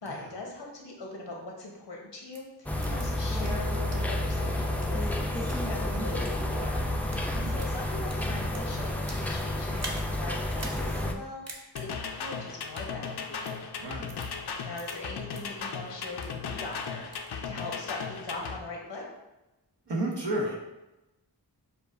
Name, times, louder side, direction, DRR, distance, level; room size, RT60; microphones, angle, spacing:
voice 1, 0.0-13.6 14.6-19.1, left 2 dB, 90° left, -1 dB, 1.0 m, -41 dB
sound 1, 2.3-2.4 2.8-3.0 3.4-3.5 3.9-4.0 4.6-5.6 6.1-6.3 6.9-7.2 7.5-9.3 9.7-10.0 10.5-10.8 11.1-11.2 11.5-11.8 12.6-12.9 13.4-13.5 14.1-14.3 14.8-14.9 15.3-15.4 15.9-16.4 16.7-17.3, right 2 dB, 40° right, 0.8 m, -43 dB
sound 2, 2.7-11.1, left 1 dB, 5° left, 0.4 m, -30 dB
sound 3, 11.7-18.6, left 5 dB, 70° left, 0.5 m, -37 dB
voice 2, 13.8-14.1 19.9-20.6, right 1 dB, 85° right, -2 dB, 1.0 m, -32 dB
6.7 x 2.4 x 2.5 m, 0.99 s
wide cardioid pair, 45°, 41 cm